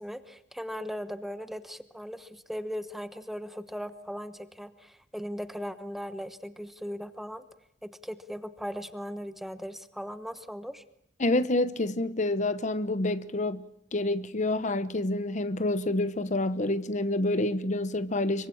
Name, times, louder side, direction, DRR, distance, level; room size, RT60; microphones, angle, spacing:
voice 1, 0.0-7.5 7.8-10.8, equal, ahead, 1.1 m, -38 dB
voice 2, 11.2-13.7 13.9-18.5, left 2 dB, 40° left, 1.0 m, -28 dB
25.5 x 24.0 x 8.7 m
head